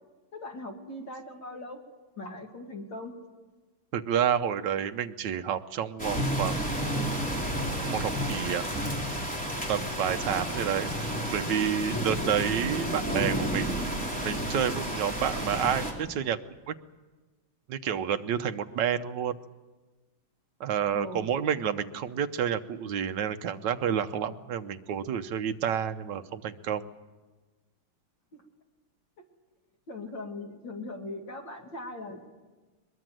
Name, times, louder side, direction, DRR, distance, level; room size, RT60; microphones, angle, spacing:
voice 1, 0.3-1.8 2.2-3.1 20.9-21.3 28.3-28.4 29.2-29.3 29.9-32.2, left 2 dB, 55° left, 2 dB, 3.1 m, -40 dB
voice 2, 3.9-6.6 7.9-8.7 9.7-10.9 11.3-13.9 14.2-16.4 16.7-16.8 17.7-19.4 20.6-26.9, right 8 dB, 60° right, 8 dB, 1.4 m, -29 dB
sound 1, 6.0-15.9, right 1 dB, 5° left, 3.5 m, -31 dB
22.5 x 21.5 x 7.7 m, 1.2 s
omnidirectional pair, 2.4 m